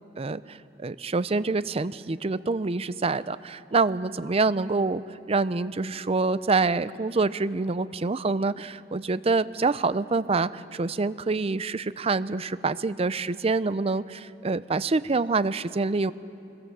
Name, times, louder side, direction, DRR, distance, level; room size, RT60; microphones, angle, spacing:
voice 1, 0.2-16.1, right 3 dB, 30° right, 15 dB, 0.5 m, -26 dB
24.5 x 21.0 x 7.4 m, 2.8 s
head